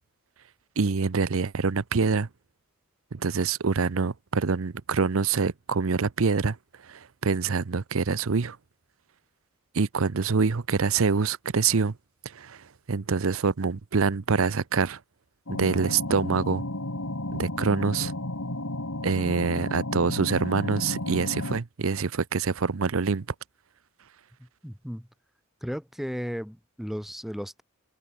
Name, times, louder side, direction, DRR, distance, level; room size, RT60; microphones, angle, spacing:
voice 1, 0.8-2.3 3.1-6.6 6.8-8.6 9.7-12.0 12.2-15.0 15.5-16.6 17.3-18.1 19.0-23.3, right 5 dB, 75° right, 0.7 m, -25 dB
sound 1, 15.5-21.6, left 1 dB, 75° left, 3.7 m, -33 dB
voice 2, 24.6-25.1 25.6-27.6, equal, ahead, 2.1 m, -35 dB
head